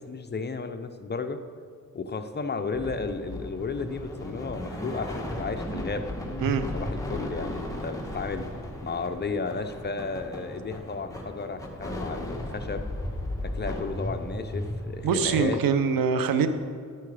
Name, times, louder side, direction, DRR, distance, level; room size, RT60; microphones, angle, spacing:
voice 1, 0.0-1.4 1.9-6.1 6.7-8.5 8.8-12.9 13.4-15.6, left 4 dB, 30° left, 7 dB, 0.8 m, -33 dB
sound 1, 2.7-15.4, left 1 dB, 10° left, 2.0 m, -35 dB
voice 2, 15.0-16.5, right 6 dB, 90° right, 9 dB, 0.9 m, -24 dB
12.5 x 9.0 x 5.0 m, 2.1 s
cardioid pair, 90°, 33 cm